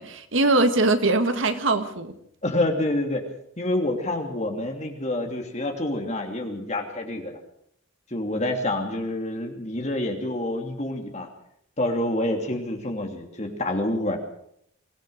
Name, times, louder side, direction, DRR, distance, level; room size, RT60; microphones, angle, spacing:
voice 1, 0.0-2.2, right 2 dB, 70° right, 9 dB, 1.7 m, -22 dB
voice 2, 2.4-3.3 3.6-7.4 8.1-11.3 11.8-14.2, left 1 dB, 35° left, 3 dB, 3.0 m, -27 dB
24.0 x 17.0 x 6.5 m, 0.70 s
head